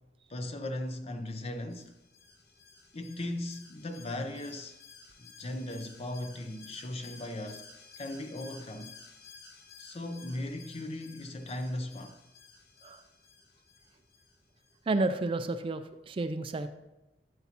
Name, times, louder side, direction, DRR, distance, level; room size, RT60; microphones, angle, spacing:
voice 1, 0.3-1.9 2.9-4.8 5.2-7.7 8.0-8.9 9.8-12.2, left 1 dB, 35° left, 0.6 m, -38 dB
Alarm, 1.3-14.8 15.1-15.2, left 5 dB, 65° left, 1.1 m, -54 dB
voice 2, 14.9-16.7, right 2 dB, 30° right, 0.4 m, -31 dB
12.5 x 6.9 x 2.8 m
head